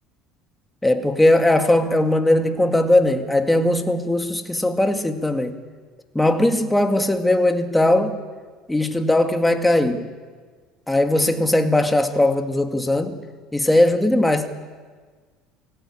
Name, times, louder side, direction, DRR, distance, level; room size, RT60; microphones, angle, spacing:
voice 1, 0.8-5.6 6.1-8.2 8.7-10.1 10.9-13.2 13.5-14.5, left 1 dB, 10° left, 2.2 m, -19 dB
23.5 x 17.5 x 8.8 m
supercardioid pair, 95°, 0 cm